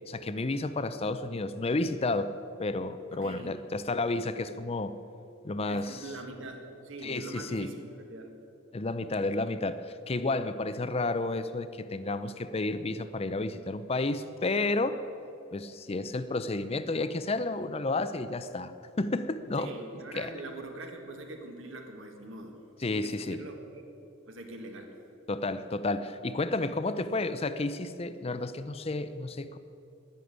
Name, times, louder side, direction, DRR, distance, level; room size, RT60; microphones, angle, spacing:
voice 1, 0.1-2.3 2.6-5.0 5.4-6.0 7.0-7.7 8.7-15.0 15.5-19.7 20.1-20.3 22.8-23.4 25.3-29.6, left 2 dB, 30° left, 12 dB, 0.5 m, -31 dB
voice 2, 3.1-3.5 5.7-8.4 19.6-23.8 24.3-24.9, right 2 dB, 65° right, 4 dB, 1.8 m, -43 dB
11.0 x 10.5 x 9.4 m, 2.8 s
head